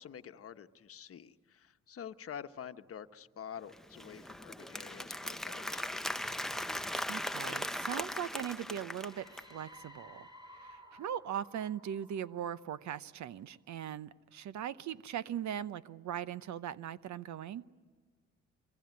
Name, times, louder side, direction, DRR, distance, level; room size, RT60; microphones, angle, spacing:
voice 1, 0.0-6.4, left 8 dB, 50° left, 9 dB, 1.1 m, -48 dB
Applause, 3.7-9.5, left 1 dB, ahead, 0.7 m, -39 dB
voice 2, 7.1-10.3 10.5-17.7, right 9 dB, 70° right, 15 dB, 0.8 m, -40 dB
sound 1, 8.7-13.3, equal, 15° right, 5.6 m, -56 dB
25.0 x 23.5 x 9.5 m, 1.5 s
cardioid pair, 90°, 30 cm